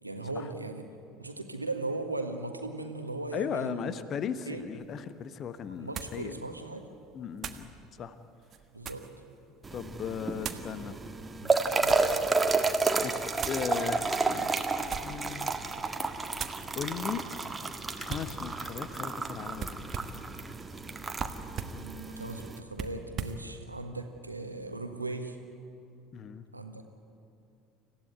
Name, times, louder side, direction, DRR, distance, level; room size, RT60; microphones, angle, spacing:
voice 1, 0.0-0.8 1.2-3.9 4.5-4.6 5.8-6.8 8.7-9.1 10.8-11.0 11.4-12.1 21.8-25.4 26.5-26.9, right 2 dB, 90° right, 6 dB, 1.5 m, -38 dB
voice 2, 3.3-6.3 7.1-7.7 8.0-8.1 9.7-11.0 13.0-13.1 13.5-14.7 15.0-15.5 16.2-16.3 16.8-17.3 18.0-19.8 26.1-26.5, left 7 dB, 40° left, 12 dB, 1.2 m, -37 dB
sound 1, 4.8-4.9 5.9-6.2 7.4-7.7 8.4-9.2 10.4-10.7 11.5-12.2 13.4-13.7 14.8-15.3 15.7-15.9 16.4-16.6 18.1-18.4 19.6-20.3 21.2-21.8 22.7-23.4, right 6 dB, 40° right, 1.4 m, -39 dB
sound 2, 9.6-22.6, right 3 dB, 15° right, 1.6 m, -31 dB
26.5 x 15.5 x 9.7 m, 2.6 s
figure-of-eight pair, 65°, 0 cm